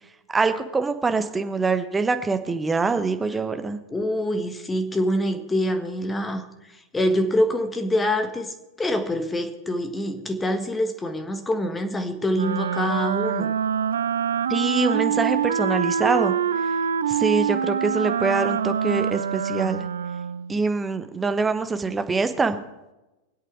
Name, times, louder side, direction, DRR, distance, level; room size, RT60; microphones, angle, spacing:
voice 1, 0.3-3.8 14.5-16.3 17.1-19.8 20.5-22.6, right 4 dB, 15° right, 8 dB, 1.1 m, -24 dB
voice 2, 3.9-13.5, left 1 dB, 10° left, 7 dB, 1.5 m, -25 dB
Wind instrument woodwind instrument, 12.3-20.6, right 8 dB, 65° right, 0.4 m, -25 dB
24.5 x 8.2 x 4.6 m, 1.0 s
figure-of-eight pair, 90°, 0 cm